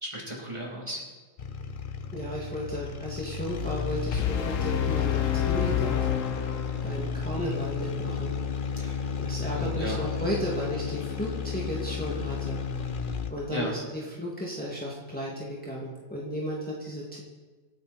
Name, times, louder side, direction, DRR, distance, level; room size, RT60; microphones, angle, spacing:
voice 1, 0.0-1.0 7.3-7.6 8.8-9.0 9.5-10.0 13.5-13.8, equal, 20° right, -4 dB, 3.7 m, -35 dB
sound 1, 1.4-13.5, left 6 dB, 45° left, 1.0 m, -33 dB
voice 2, 2.1-6.3 6.8-8.3 9.2-12.6 13.3-17.2, equal, 5° left, -5 dB, 2.4 m, -34 dB
sound 2, 4.1-7.1, left 11 dB, 85° left, 1.3 m, -28 dB
26.5 x 9.3 x 4.4 m, 1.3 s
omnidirectional pair, 1.3 m